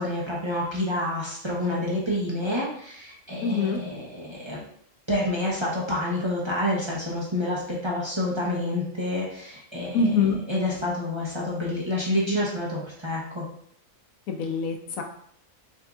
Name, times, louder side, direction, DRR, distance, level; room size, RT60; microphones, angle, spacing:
voice 1, 0.0-4.6 5.1-13.4, left 1 dB, 25° right, -6 dB, 0.8 m, -28 dB
voice 2, 3.4-3.8 9.9-10.4 14.3-15.0, left 4 dB, 85° left, 4 dB, 1.1 m, -24 dB
6.6 x 2.7 x 2.4 m, 0.65 s
omnidirectional pair, 1.4 m